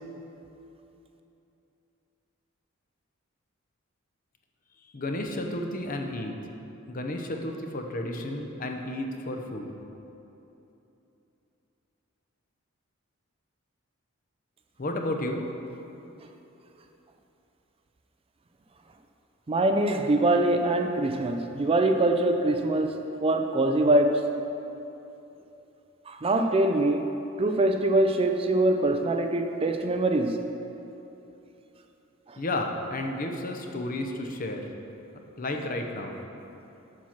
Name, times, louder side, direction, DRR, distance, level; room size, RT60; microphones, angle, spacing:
voice 1, 4.8-6.4 6.9-9.7 14.8-15.5 32.4-34.7 35.4-36.2, left 1 dB, 40° left, 3 dB, 0.7 m, -32 dB
voice 2, 19.5-24.3 26.1-27.1 27.4-30.4 32.3-32.4, right 2 dB, 25° right, 5 dB, 0.4 m, -24 dB
7.5 x 5.8 x 5.9 m, 3.0 s
head